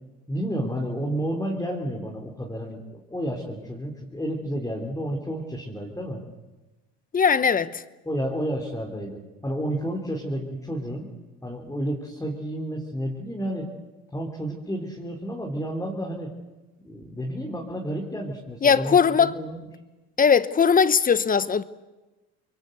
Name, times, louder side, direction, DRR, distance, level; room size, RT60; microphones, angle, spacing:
voice 1, 0.3-6.2 8.1-11.1 11.4-13.7 14.1-16.3 16.8-19.6, equal, 10° left, 3.6 m, -31 dB
voice 2, 7.1-7.8 18.6-19.3 20.2-21.6, left 6 dB, 25° left, 1.0 m, -19 dB
27.0 x 22.5 x 8.0 m
supercardioid pair, 90°, 32 cm